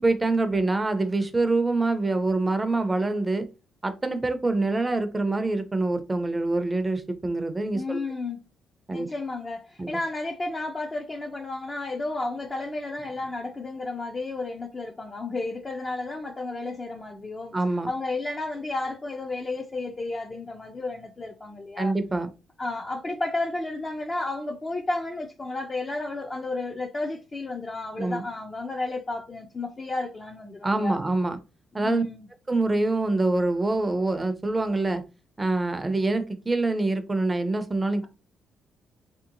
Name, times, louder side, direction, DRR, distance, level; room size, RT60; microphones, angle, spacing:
voice 1, 0.0-3.5 3.8-8.0 8.9-9.1 9.8-9.9 17.5-17.9 21.8-22.3 28.0-28.2 30.6-31.4 31.7-32.0 32.5-35.0 35.4-38.1, right 2 dB, 20° right, 0.6 m, -25 dB
voice 2, 7.7-8.4 8.9-17.5 17.9-21.9 22.6-31.0 31.8-32.3, left 2 dB, 25° left, 0.5 m, -32 dB
3.3 x 2.8 x 2.6 m
cardioid pair, 90°, 0 cm